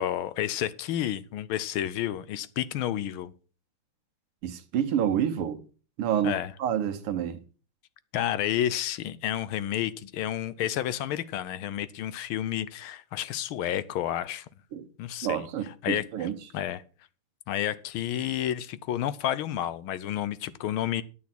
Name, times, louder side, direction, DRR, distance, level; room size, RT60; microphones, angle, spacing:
voice 1, 0.0-3.3 6.2-6.5 8.1-14.5 15.0-16.8 17.5-21.0, left 11 dB, 75° left, 1.5 m, -30 dB
voice 2, 4.4-5.6 6.0-7.4 14.7-14.9 15.2-16.4, right 9 dB, 80° right, 2.0 m, -28 dB
9.6 x 8.6 x 6.0 m
omnidirectional pair, 2.4 m